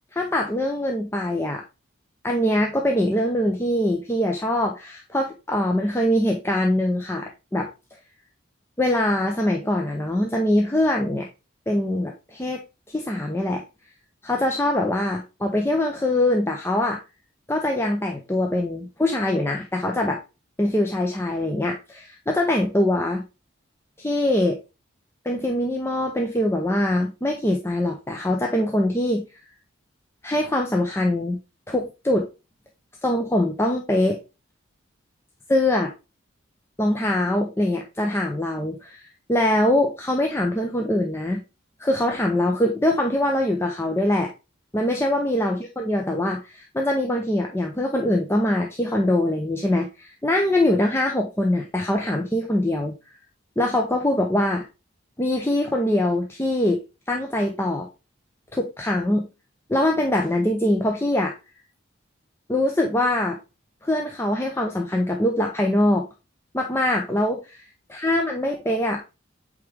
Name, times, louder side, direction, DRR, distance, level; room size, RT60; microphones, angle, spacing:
voice 1, 0.2-1.6 2.2-7.7 8.8-11.3 11.7-12.6 12.9-13.6 14.2-17.0 17.5-20.2 20.6-23.2 24.0-24.6 25.2-29.3 30.2-31.4 31.7-32.3 33.0-34.2 35.5-35.9 36.8-41.4 41.8-44.3 44.7-52.9 53.6-54.7 55.2-56.8 57.1-57.9 58.5-59.3 59.7-61.3 62.5-63.4 63.8-66.1 66.5-69.0, left 1 dB, 10° left, 1 dB, 0.6 m, -23 dB
8.2 x 3.6 x 3.3 m, 0.28 s
head